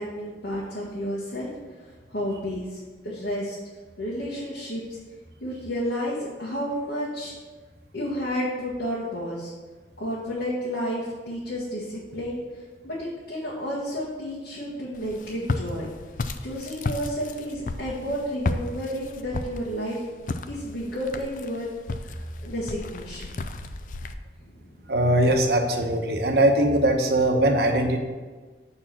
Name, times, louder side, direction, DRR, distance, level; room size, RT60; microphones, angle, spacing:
voice 1, 0.0-3.6 4.0-5.0 5.4-7.3 7.9-9.5 10.0-15.9 16.4-20.0 20.5-21.7 22.0-23.3 24.4-24.5, equal, 75° left, -6 dB, 1.5 m, -31 dB
Walk footsteps, 14.9-24.1, left 3 dB, 45° left, 0.4 m, -33 dB
voice 2, 24.9-28.0, right 1 dB, 65° right, 3 dB, 1.0 m, -21 dB
7.1 x 4.4 x 5.9 m, 1.3 s
head